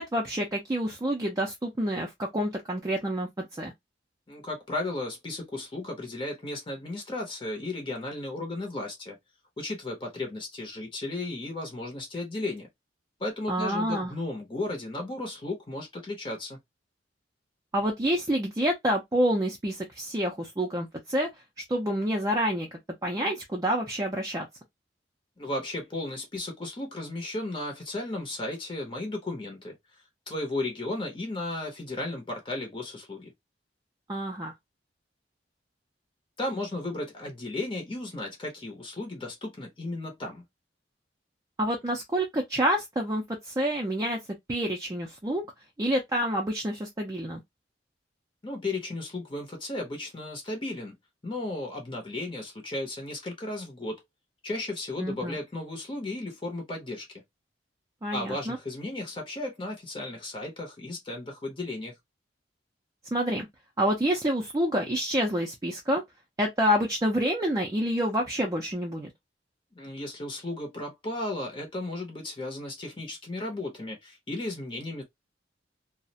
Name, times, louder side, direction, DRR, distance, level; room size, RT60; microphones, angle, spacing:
voice 1, 0.0-3.7 13.5-14.1 17.7-21.3 21.7-22.7 23.0-24.5 34.1-34.5 41.6-44.2 44.5-45.5 45.8-47.4 55.0-55.4 58.0-58.6 63.1-63.5 63.8-66.0 66.4-69.1, equal, 20° right, 0.4 m, -28 dB
voice 2, 4.3-9.2 9.6-12.7 13.2-16.6 25.4-33.3 36.4-40.4 48.4-51.0 51.2-54.0 54.4-57.2 58.1-61.9 69.7-75.0, left 2 dB, 30° left, 0.7 m, -35 dB
2.4 x 2.0 x 2.6 m
head